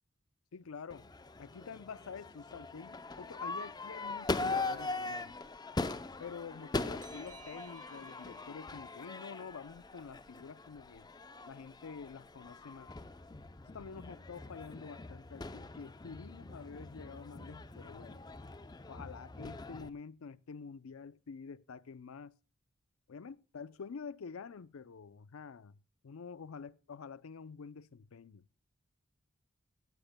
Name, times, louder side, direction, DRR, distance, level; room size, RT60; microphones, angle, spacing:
voice 1, 0.5-1.1 1.4-5.3 6.2-11.1 11.5-12.9 13.7-18.2 18.9-22.3 23.1-25.8 26.0-28.4, left 5 dB, 85° left, 0.5 m, -48 dB
Crowd / Fireworks, 0.9-19.9, left 3 dB, 20° left, 0.5 m, -41 dB
sound 1, 7.0-10.3, right 5 dB, 40° right, 5.1 m, -59 dB
17.5 x 13.0 x 2.2 m
head